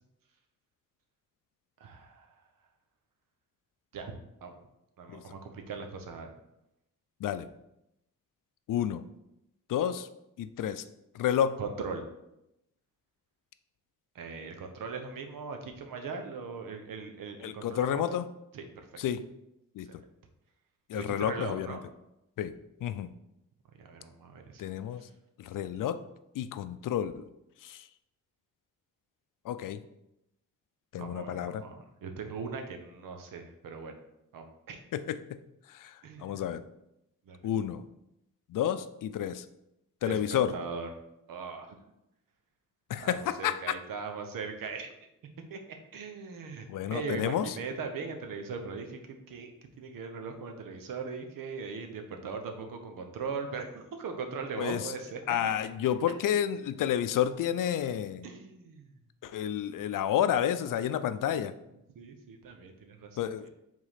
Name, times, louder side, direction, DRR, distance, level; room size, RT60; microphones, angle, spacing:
voice 1, 1.8-2.4 3.9-4.1 4.4-4.5 5.0-6.3 11.6-12.1 14.1-18.2 18.5-18.9 20.9-21.8 23.8-24.6 31.0-34.0 34.3-34.8 36.0-36.4 37.3-37.4 40.0-40.9 41.3-41.7 43.0-44.9 45.5-49.0 49.3-49.5 49.8-55.2 58.2-58.9 61.9-63.2, right 5 dB, 85° right, 5 dB, 1.0 m, -39 dB
voice 2, 8.7-9.0 9.7-10.1 10.4-10.8 11.1-11.6 17.4-18.3 19.0-19.2 19.7-19.9 20.9-21.8 22.4-22.5 22.8-23.1 24.6-25.1 25.4-26.0 26.3-27.3 27.6-27.9 29.4-29.8 30.9-31.6 34.9-35.4 35.7-36.6 37.4-37.8 38.5-39.5 40.0-40.5 42.9-43.7 46.7-47.6 54.6-54.9 55.3-58.3 59.2-61.5 63.2-63.5, left 10 dB, 75° left, 12 dB, 0.5 m, -30 dB
4.9 x 3.8 x 5.6 m, 0.86 s
cardioid pair, 110°, 33 cm